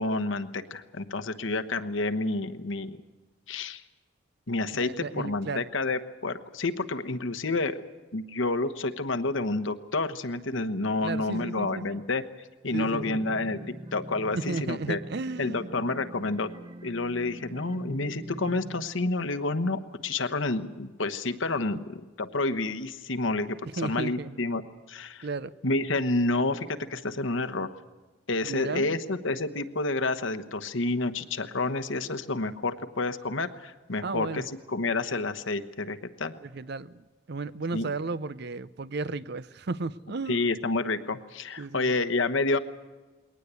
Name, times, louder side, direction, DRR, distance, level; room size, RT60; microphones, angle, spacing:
voice 1, 0.0-3.0 3.5-3.8 4.5-7.8 8.1-12.2 12.6-15.0 15.4-16.5 16.8-24.6 24.9-25.3 25.6-27.7 28.3-34.4 34.7-36.3 37.7-37.9 40.3-42.6, left 2 dB, 70° left, 1.1 m, -29 dB
voice 2, 4.7-5.7 11.0-12.0 12.7-13.2 14.3-15.7 23.6-24.4 25.2-25.5 28.4-29.0 34.0-34.5 36.4-40.5 41.6-41.9, right 3 dB, 55° right, 0.6 m, -34 dB
sound 1, 12.7-18.9, right 1 dB, 20° right, 0.9 m, -43 dB
21.5 x 19.0 x 8.3 m
head